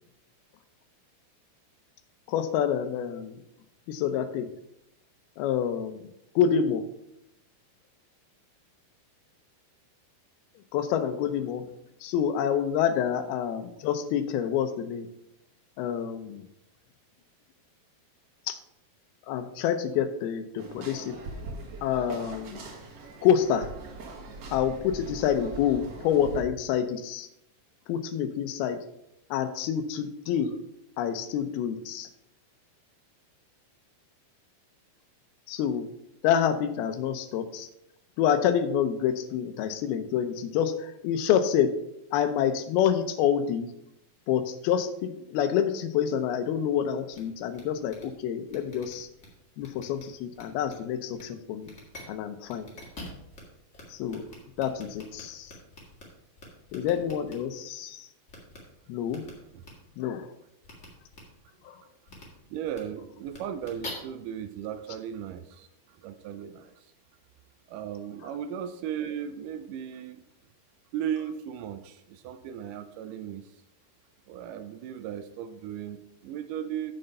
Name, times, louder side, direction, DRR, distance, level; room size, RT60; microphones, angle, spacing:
voice 1, 2.3-3.4 3.9-4.5 5.4-6.1 6.4-6.8 10.7-11.7 12.0-15.1 15.8-16.4 18.5-18.6 19.3-21.2 21.8-22.6 23.2-23.7 24.5-27.3 27.9-28.8 29.3-30.6 31.0-32.1 35.5-35.9 36.2-37.7 38.2-41.7 42.1-43.7 44.3-49.1 49.6-51.7 52.1-52.7 53.9-54.2 54.6-55.5 56.7-58.1 58.9-59.3 60.0-60.3 61.7-61.8, left 8 dB, 90° left, 10 dB, 2.7 m, -27 dB
sound 1, 20.6-26.4, right 2 dB, 50° right, 2.1 m, -41 dB
sound 2, 47.1-47.2 47.5-47.6 47.9-48.0 48.5-49.3 49.6-50.0 50.3-50.7 51.1-51.2 51.6-52.0 52.5-53.4 53.7-53.8 54.1-56.0 56.4-57.3 58.3-58.6 59.1-59.3 59.6-59.7 60.6-60.9 61.1-61.2 62.1-62.2 62.7-62.8 63.3-63.9, left 2 dB, 30° left, 1.3 m, -45 dB
voice 2, 62.2-66.9 67.7-70.2 70.9-73.6 74.3-76.9, right 9 dB, 85° right, 10 dB, 1.9 m, -36 dB
7.9 x 6.7 x 5.4 m, 0.81 s
omnidirectional pair, 4.3 m